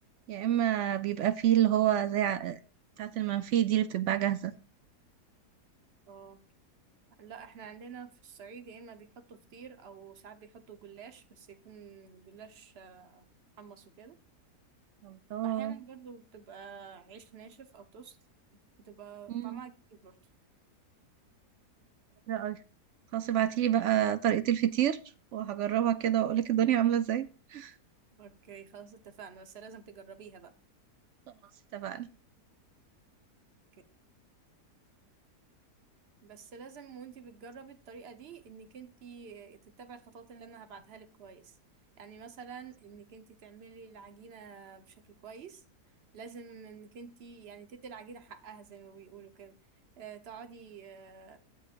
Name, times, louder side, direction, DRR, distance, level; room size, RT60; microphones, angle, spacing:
voice 1, 0.3-2.6 3.0-4.5 15.0-15.7 19.3-19.6 22.3-22.6 23.1-25.0 25.3-27.7 31.7-32.1, right 11 dB, 70° right, 13 dB, 0.7 m, -28 dB
voice 2, 6.1-6.4 7.2-13.3 13.6-14.2 15.4-18.2 18.8-20.1 28.2-30.5 36.2-41.6 42.0-45.6 46.1-49.6 50.0-51.4, right 6 dB, 45° right, 9 dB, 1.1 m, -49 dB
11.5 x 7.7 x 2.5 m, 0.36 s
omnidirectional pair, 1.7 m